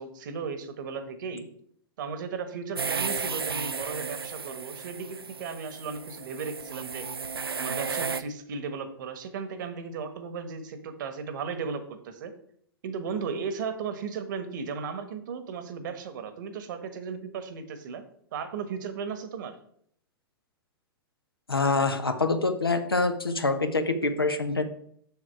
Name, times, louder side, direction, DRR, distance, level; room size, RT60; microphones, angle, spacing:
voice 1, 0.0-1.5 2.0-7.1 7.6-12.3 12.8-18.0 18.3-19.5, right 5 dB, 55° right, 10 dB, 1.2 m, -35 dB
sound 1, 2.8-8.2, right 5 dB, 85° right, 0.5 m, -33 dB
voice 2, 21.5-24.6, left 3 dB, 85° left, 8 dB, 0.9 m, -25 dB
7.1 x 6.5 x 4.6 m, 0.66 s
figure-of-eight pair, 100°, 12 cm